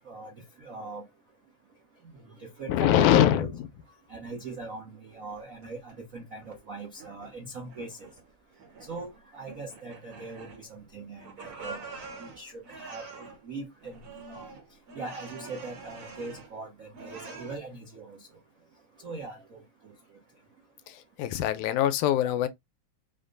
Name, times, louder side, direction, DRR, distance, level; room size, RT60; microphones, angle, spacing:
voice 1, 0.6-1.0 2.1-3.1 3.4-3.5 4.1-8.1 8.9-11.8 12.2-14.5 14.9-18.2 19.0-19.9, right 3 dB, 90° right, 0.7 m, -41 dB
voice 2, 2.7-3.7 20.9-22.5, left 11 dB, 90° left, 2.1 m, -23 dB
sound 1, 5.1-6.0 6.4-7.4 7.7-8.2 8.6-9.1 9.4-10.9 11.2-13.4 13.8-16.6 16.9-17.6, right 4 dB, 55° right, 1.0 m, -45 dB
5.2 x 2.2 x 3.8 m
omnidirectional pair, 3.5 m